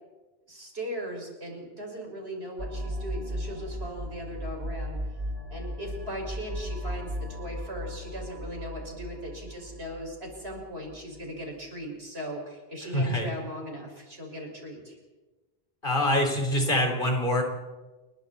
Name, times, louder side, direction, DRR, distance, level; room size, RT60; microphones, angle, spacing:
voice 1, 0.5-5.0 5.5-15.0, equal, 80° right, 0 dB, 6.2 m, -38 dB
sound 1, 2.6-11.2, equal, 35° right, 2.1 m, -36 dB
voice 2, 12.9-13.3 15.8-17.4, left 1 dB, 55° left, 2 dB, 4.3 m, -25 dB
30.0 x 22.0 x 4.3 m, 1.2 s
omnidirectional pair, 1.0 m